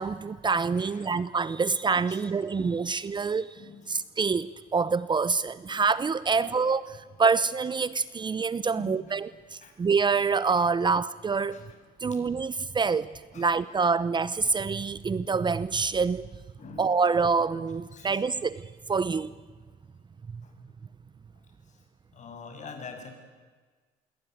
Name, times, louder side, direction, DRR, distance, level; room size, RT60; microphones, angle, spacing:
voice 1, 0.0-3.6 3.9-11.6 12.0-16.3 16.8-19.3 20.3-20.4, right 5 dB, 25° right, 17 dB, 0.8 m, -26 dB
voice 2, 0.8-1.2 2.1-2.9 3.5-3.9 5.7-5.8 6.4-6.6 8.7-9.2 9.6-9.7 11.5-11.7 13.3-13.5 16.6-17.0 17.9-18.2 20.4-20.5 22.1-23.1, left 5 dB, 45° left, 5 dB, 7.2 m, -46 dB
27.0 x 22.0 x 9.5 m, 1.4 s
cardioid pair, 110°, 17 cm